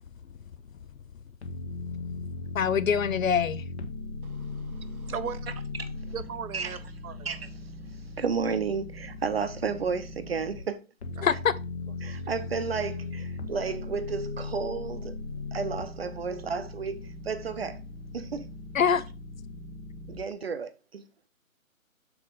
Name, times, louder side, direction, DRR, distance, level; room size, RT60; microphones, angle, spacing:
sound 1, 1.4-10.6 11.0-20.2, left 3 dB, 50° left, 1.2 m, -38 dB
voice 1, 2.5-3.6 11.2-11.5 18.7-19.0, left 7 dB, 70° left, 0.7 m, -24 dB
voice 2, 4.2-5.5 6.1-7.3 11.2-11.3, right 7 dB, 85° right, 0.8 m, -38 dB
voice 3, 8.2-10.8 12.0-15.2 15.5-17.8 18.1-18.5 20.1-21.0, right 5 dB, 45° right, 0.8 m, -32 dB
6.9 x 4.3 x 3.9 m
hypercardioid pair, 165°, 42 cm